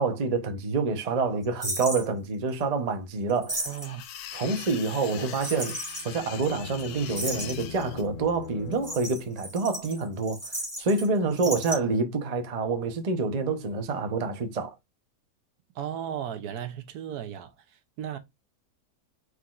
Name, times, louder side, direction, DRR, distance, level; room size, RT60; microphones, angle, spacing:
voice 1, 0.0-4.0 4.3-5.8 6.0-14.7, right 4 dB, 45° right, 0.4 m, -27 dB
sound 1, 1.6-2.0 3.3-4.0 5.4-6.1 6.4-6.5 6.8-6.9 7.1-7.8 8.7-11.1 11.3-11.8, right 1 dB, 10° right, 1.4 m, -34 dB
sound 2, 3.7-8.0, left 10 dB, 75° left, 1.0 m, -42 dB
voice 2, 3.7-4.0 5.1-5.4 11.4-11.6 15.7-18.2, right 10 dB, 70° right, 1.1 m, -36 dB
sound 3, 5.7-9.5, left 9 dB, 55° left, 0.5 m, -43 dB
4.5 x 3.8 x 2.4 m
omnidirectional pair, 1.8 m